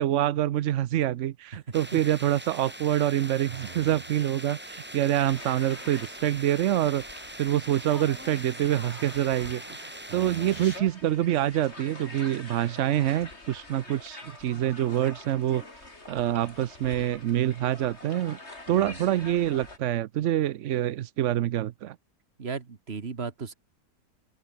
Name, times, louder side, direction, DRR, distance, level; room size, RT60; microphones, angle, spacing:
voice 1, 0.0-7.0 7.4-15.6 16.1-18.4 18.7-22.0, right 12 dB, 70° right, 0.7 m, -26 dB
sound 1, 1.7-10.8, right 1 dB, 5° right, 1.6 m, -42 dB
voice 2, 3.5-3.9 10.1-10.7 18.7-19.0 22.4-23.5, right 5 dB, 35° right, 1.8 m, -37 dB
sound 2, 5.1-19.8, left 2 dB, 35° left, 4.5 m, -46 dB
open air
omnidirectional pair, 1.9 m